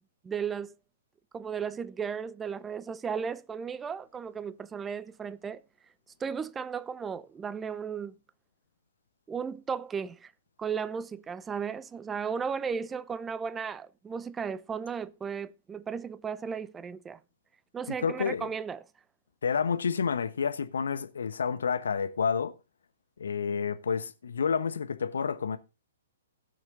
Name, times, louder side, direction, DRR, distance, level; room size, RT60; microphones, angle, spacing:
voice 1, 0.2-0.7 1.3-5.6 6.2-8.1 9.3-10.3 10.6-17.2 17.7-18.8, right 6 dB, 15° right, 0.5 m, -35 dB
voice 2, 17.9-18.5 19.4-22.5 23.2-25.6, left 6 dB, 65° left, 1.1 m, -29 dB
17.0 x 6.4 x 3.8 m
figure-of-eight pair, 115°, 0 cm